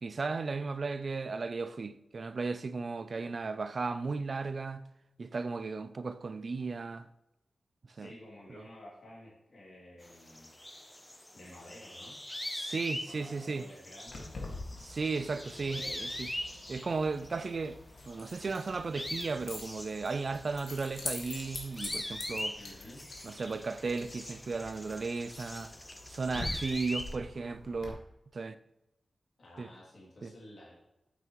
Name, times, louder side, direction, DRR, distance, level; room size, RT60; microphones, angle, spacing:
voice 1, 0.0-4.8 5.2-7.1 8.0-8.1 12.5-13.7 14.8-16.3 16.7-17.8 18.1-22.6 23.2-25.7 26.1-28.0 28.3-28.6 29.6-29.7 30.2-30.3, right 4 dB, 45° right, 0.5 m, -35 dB
voice 2, 7.9-10.5 11.3-12.2 13.1-14.3 15.4-16.3 22.6-23.0 29.4-30.7, left 1 dB, 55° left, 2.6 m, -51 dB
sound 1, 10.0-17.7 18.0-27.2, left 1 dB, 10° left, 0.7 m, -43 dB
Keys jangling, 14.1-27.9, left 2 dB, 90° left, 1.9 m, -45 dB
9.2 x 8.2 x 3.1 m
wide cardioid pair, 180°, 0 cm